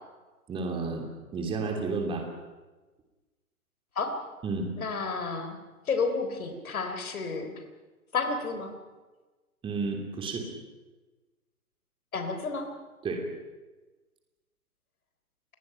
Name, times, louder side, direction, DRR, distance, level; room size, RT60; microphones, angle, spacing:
voice 1, 0.5-1.1 1.3-2.3 4.4-4.7 9.6-10.5 13.0-13.3, right 4 dB, 10° right, 2 dB, 3.0 m, -31 dB
voice 2, 4.8-5.6 5.9-7.5 8.1-8.8 12.1-12.7, left 4 dB, 65° left, 7 dB, 3.8 m, -31 dB
28.0 x 21.5 x 5.8 m, 1.2 s
figure-of-eight pair, 130°, 45 cm